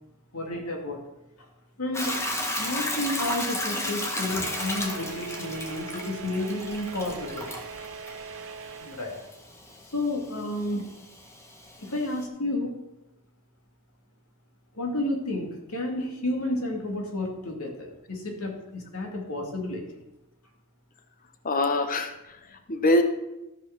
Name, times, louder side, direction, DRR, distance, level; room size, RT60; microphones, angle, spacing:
voice 1, 0.3-1.0 1.4-1.5 1.8-2.2 2.6-7.5 8.8-9.2 9.9-11.0 11.8-12.7 14.7-20.0, left 1 dB, 70° left, 1 dB, 2.4 m, -31 dB
Hiss / Toilet flush / Trickle dribble, 1.9-12.2, left 1 dB, 10° left, 1.3 m, -34 dB
sound 1, 4.3-9.4, right 5 dB, 60° right, 0.6 m, -41 dB
voice 2, 21.4-23.0, left 1 dB, 40° left, 7 dB, 1.0 m, -24 dB
13.5 x 5.4 x 6.0 m, 0.95 s
head